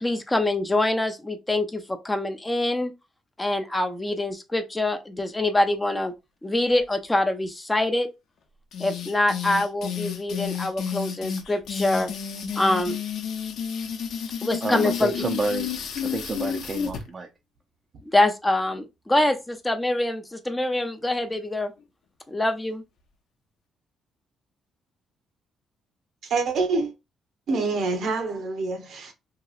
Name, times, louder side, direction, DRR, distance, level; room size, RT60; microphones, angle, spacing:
voice 1, 0.0-2.9 3.4-6.1 6.4-8.1 8.8-12.1 12.6-13.0 14.4-15.1 18.1-21.7 22.3-22.8, left 1 dB, 15° left, 0.5 m, -25 dB
sound 1, 8.7-17.0, left 7 dB, 75° left, 0.6 m, -31 dB
voice 2, 14.6-15.7 16.0-17.3, right 3 dB, 40° right, 0.5 m, -29 dB
voice 3, 26.3-26.9 27.5-29.1, right 3 dB, 70° right, 0.8 m, -26 dB
2.9 x 2.9 x 2.4 m
cardioid pair, 90°, 0 cm